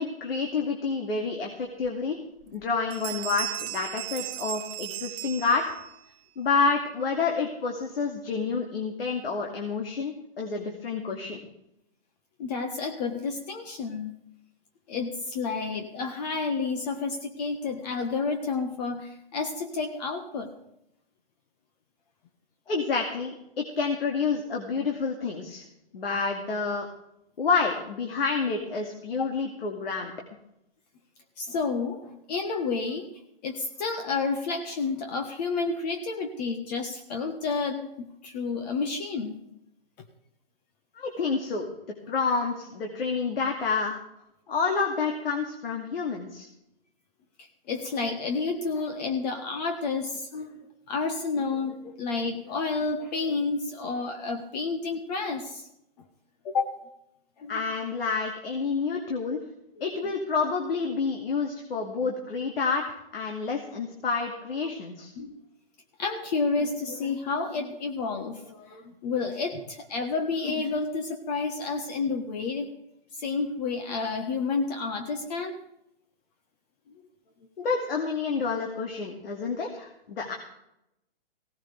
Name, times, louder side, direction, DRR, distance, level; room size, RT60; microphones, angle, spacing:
voice 1, 0.0-2.2 2.5-5.6 6.4-11.4 22.7-25.6 25.9-26.9 27.4-30.1 40.9-41.7 42.1-44.0 44.5-46.5 57.5-59.4 59.8-62.8 63.1-65.1 77.6-80.3, left 4 dB, 70° left, 1 dB, 2.4 m, -29 dB
Bell, 1.8-1.9 2.4-2.6 2.9-6.0, right 17 dB, 25° right, 0.6 m, -36 dB
voice 2, 12.4-14.2 14.9-20.5 29.2-29.4 31.4-33.1 33.4-39.4 47.4-50.6 50.9-55.6 56.4-56.8 57.4-57.6 59.8-59.9 65.2-65.3 66.0-72.7 73.2-75.6, left 4 dB, 45° left, 5 dB, 1.5 m, -30 dB
17.0 x 16.0 x 3.5 m, 0.82 s
hypercardioid pair, 135°, 30 cm